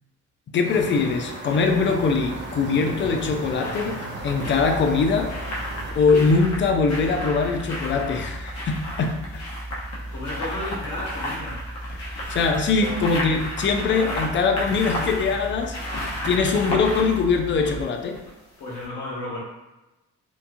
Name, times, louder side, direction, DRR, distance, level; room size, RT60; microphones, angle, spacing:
voice 1, 0.5-5.4 6.0-9.4 12.3-15.8 16.2-18.2, left 4 dB, 40° left, 4 dB, 0.4 m, -22 dB
sound 1, 0.6-5.9, right 1 dB, 40° right, 0.6 m, -35 dB
sound 2, 1.0-1.7 2.9-18.5 18.8-18.9, left 1 dB, 60° left, 0.9 m, -34 dB
sound 3, 4.2-17.8, right 1 dB, 10° left, 0.8 m, -37 dB
voice 2, 10.1-11.6 12.7-13.1 18.6-19.4, left 1 dB, 85° left, -6 dB, 1.2 m, -33 dB
2.9 x 2.2 x 2.6 m, 1.0 s
cardioid pair, 90°, 30 cm